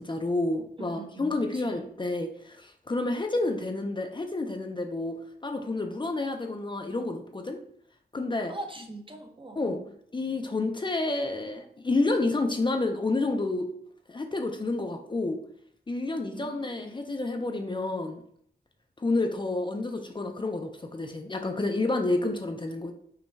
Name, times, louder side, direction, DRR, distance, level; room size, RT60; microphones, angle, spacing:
voice 1, 0.0-7.6 8.1-8.5 9.6-9.8 10.1-13.7 14.1-15.4 15.9-18.2 19.0-22.9, left 2 dB, 30° left, 4 dB, 0.4 m, -29 dB
voice 2, 0.8-1.8 8.5-9.8 16.3-16.9, right 2 dB, 30° right, 4 dB, 0.6 m, -42 dB
5.2 x 2.2 x 3.3 m, 0.65 s
wide cardioid pair, 100°, 17 cm